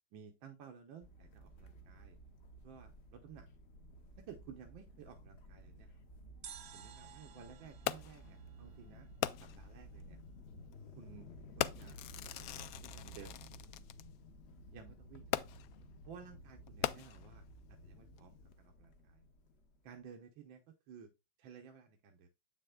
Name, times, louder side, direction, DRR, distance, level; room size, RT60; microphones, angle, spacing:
voice 1, 0.1-2.2 2.6-3.5 4.2-5.9 6.7-9.1 9.4-10.2 10.9-11.3 11.6-12.0 12.4-13.6 14.7-15.5 16.1-17.4 17.7-19.2 19.8-21.1 21.4-22.3, right 7 dB, 80° right, 4 dB, 1.7 m, -55 dB
sound 1, 1.0-20.0, equal, 45° left, 1.0 m, -55 dB
sound 2, 6.4-9.5 9.8-9.9, right 9 dB, 60° right, 1.0 m, -55 dB
Fireworks, 7.9-8.3 9.2-9.7 10.6-10.8 11.6-14.0 15.3-15.8 16.7-17.5 18.2-18.3, left 12 dB, 85° left, 0.7 m, -39 dB
8.3 x 6.6 x 2.2 m, 0.23 s
omnidirectional pair, 2.1 m